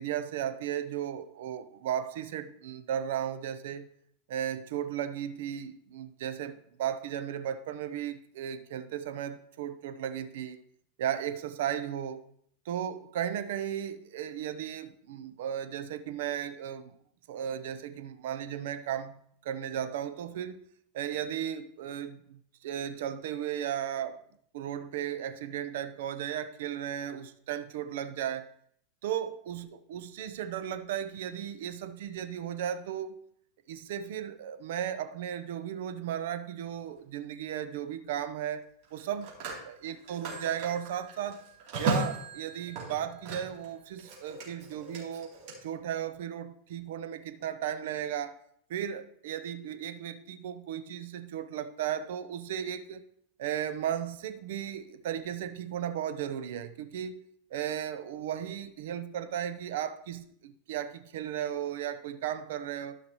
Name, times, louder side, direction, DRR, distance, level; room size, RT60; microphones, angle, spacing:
voice 1, 0.0-3.9 4.3-10.6 11.0-12.2 12.7-16.9 17.3-20.6 20.9-24.2 24.5-28.5 29.0-33.2 33.7-38.6 38.9-39.3 39.6-41.5 41.8-45.3 45.6-48.4 48.7-53.0 53.4-63.0, right 10 dB, 75° right, 10 dB, 0.7 m, -35 dB
Telephone, 36.6-36.9 38.8-43.7 44.0-45.5, right 3 dB, 55° right, 3.1 m, -36 dB
13.0 x 5.8 x 3.1 m, 0.66 s
supercardioid pair, 140°, 0 cm